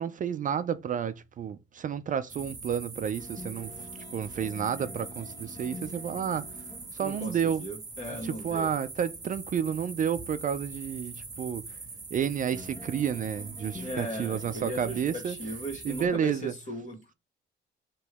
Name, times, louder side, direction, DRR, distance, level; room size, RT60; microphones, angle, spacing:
voice 1, 0.0-3.7 4.1-6.5 6.9-7.6 8.2-11.6 12.1-15.4 15.8-16.5, right 8 dB, 40° right, 0.4 m, -30 dB
sound 1, 2.3-16.1, right 3 dB, 20° right, 0.8 m, -43 dB
sound 2, 3.2-15.0, left 2 dB, 20° left, 1.1 m, -49 dB
voice 2, 7.0-8.7 13.7-17.1, right 1 dB, 40° left, 1.9 m, -38 dB
4.5 x 3.0 x 3.4 m
cardioid pair, 90°, 20 cm